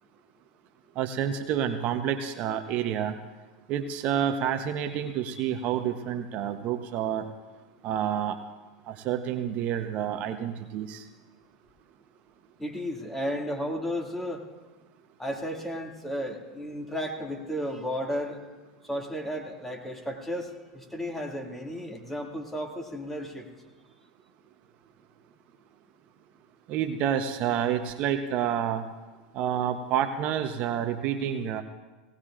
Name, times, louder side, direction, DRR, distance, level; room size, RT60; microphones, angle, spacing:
voice 1, 1.0-3.1 3.7-7.3 7.8-8.4 8.9-11.0 26.7-28.8 29.3-31.6, right 9 dB, 50° right, 7 dB, 0.9 m, -29 dB
voice 2, 12.6-14.5 15.2-18.4 18.8-23.5, equal, 10° left, 1 dB, 2.2 m, -33 dB
18.5 x 18.0 x 2.5 m, 1.2 s
hypercardioid pair, 95°, 3 cm